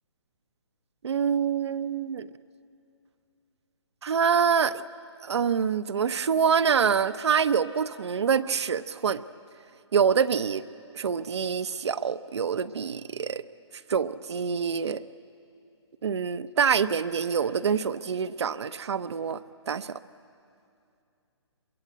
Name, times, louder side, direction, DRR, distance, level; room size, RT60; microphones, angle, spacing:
voice 1, 1.0-2.3 4.0-4.8 5.2-9.2 9.9-10.6 10.9-13.4 13.9-15.0 16.0-20.0, right 6 dB, 65° right, 13 dB, 0.9 m, -26 dB
23.5 x 23.5 x 8.0 m, 2.5 s
hypercardioid pair, 145°, 15 cm